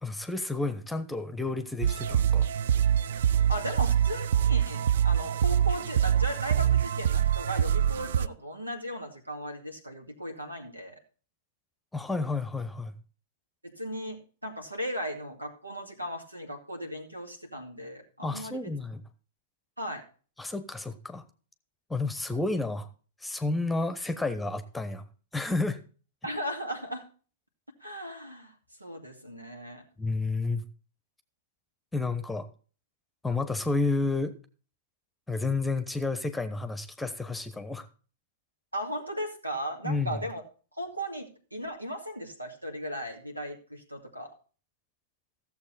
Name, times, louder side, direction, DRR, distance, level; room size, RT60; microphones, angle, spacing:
voice 1, 0.0-2.5 11.9-12.9 18.2-19.0 20.4-21.2 21.9-22.9 23.2-25.1 25.3-25.8 30.0-30.6 31.9-32.5 33.2-34.3 35.3-37.9 39.8-40.2, left 3 dB, 5° left, 11 dB, 1.0 m, -31 dB
sound 1, 1.8-8.3, right 9 dB, 60° right, 0.4 m, -25 dB
voice 2, 3.5-11.0 13.6-18.7 19.8-20.0 26.2-27.1 27.8-28.5 28.8-29.8 38.7-40.4 40.8-44.3, equal, 90° right, 3 dB, 2.2 m, -37 dB
14.5 x 7.3 x 4.1 m, 0.38 s
figure-of-eight pair, 105°, 0 cm